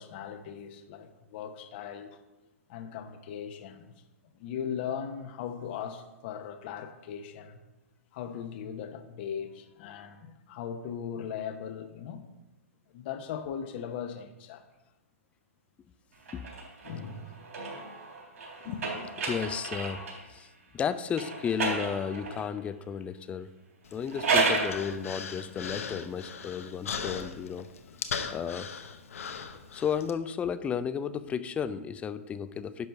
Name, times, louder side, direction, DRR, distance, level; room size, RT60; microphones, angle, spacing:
voice 1, 0.0-2.2 2.7-3.9 4.3-7.6 8.1-12.3 12.9-14.7 16.8-17.4 18.6-18.9, left 8 dB, 45° left, 1.0 m, -38 dB
sound 1, 16.2-20.3 21.1-22.5 23.9-24.8, right 3 dB, 70° right, 3.7 m, -32 dB
voice 2, 19.2-20.0 20.3-23.5 23.9-27.7 28.3-28.7 29.7-32.9, left 7 dB, 15° left, 0.4 m, -33 dB
Human voice, 23.8-30.1, left 6 dB, 70° left, 1.0 m, -39 dB
11.0 x 4.4 x 6.5 m
hypercardioid pair, 125°, 8 cm